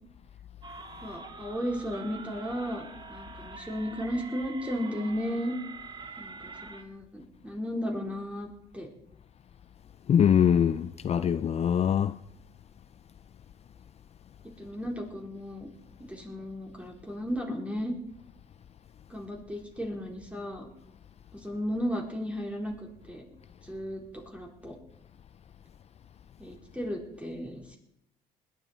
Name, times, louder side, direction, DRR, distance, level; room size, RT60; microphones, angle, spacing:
sound 1, 0.6-6.8, right 4 dB, 25° right, 1.8 m, -45 dB
voice 1, 1.0-5.6 6.2-8.5 8.7-8.9 14.6-15.7 16.0-17.9 19.1-20.7 21.3-23.2 23.6-24.8 26.4-27.8, equal, 5° right, 4.2 m, -35 dB
voice 2, 10.1-12.1, left 8 dB, 40° left, 0.5 m, -23 dB
20.5 x 11.5 x 4.5 m
cardioid pair, 110°, 17 cm